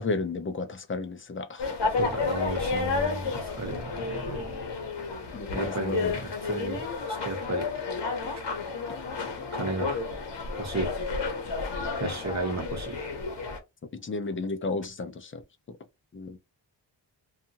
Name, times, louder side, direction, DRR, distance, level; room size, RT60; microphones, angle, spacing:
voice 1, 0.0-1.7 5.3-6.1 14.0-15.4 16.1-16.4, left 3 dB, 30° left, 0.5 m, -32 dB
sound 1, 1.6-13.6, left 4 dB, 65° left, 0.9 m, -31 dB
voice 2, 2.0-4.4 5.5-6.8 7.2-7.7 9.6-10.0 10.6-10.9 12.0-13.0, right 2 dB, 35° right, 1.0 m, -33 dB
2.7 x 2.4 x 2.7 m
wide cardioid pair, 105°, 45 cm